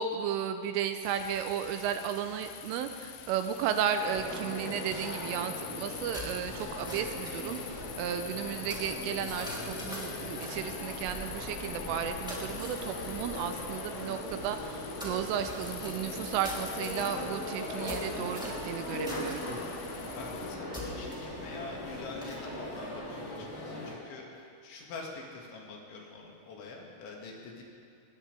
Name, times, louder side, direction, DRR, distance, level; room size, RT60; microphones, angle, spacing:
voice 1, 0.0-19.5, right 8 dB, 85° right, 7 dB, 3.1 m, -34 dB
sound 1, 1.0-20.6, left 12 dB, 85° left, 2.4 m, -46 dB
sound 2, 4.0-23.9, left 1 dB, 30° left, 5.0 m, -40 dB
sound 3, 5.8-23.7, equal, ahead, 1.6 m, -46 dB
voice 2, 20.1-27.6, left 3 dB, 70° left, -1 dB, 4.2 m, -45 dB
20.5 x 20.0 x 3.4 m, 2.4 s
omnidirectional pair, 5.9 m